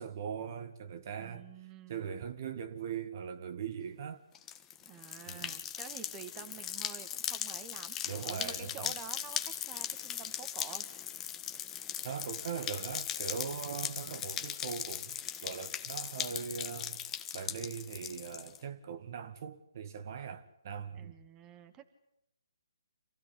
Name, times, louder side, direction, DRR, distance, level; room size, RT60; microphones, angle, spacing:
voice 1, 0.0-1.5 1.9-4.2 5.3-5.6 8.1-8.9 12.0-17.0 17.3-21.1, right 7 dB, 45° right, 2.0 m, -40 dB
voice 2, 1.2-2.1 4.9-10.9 21.0-21.8, right 8 dB, 20° right, 2.0 m, -49 dB
sound 1, 4.3-18.6, left 10 dB, 15° left, 1.4 m, -39 dB
27.0 x 16.0 x 9.9 m
figure-of-eight pair, 145°, 2 cm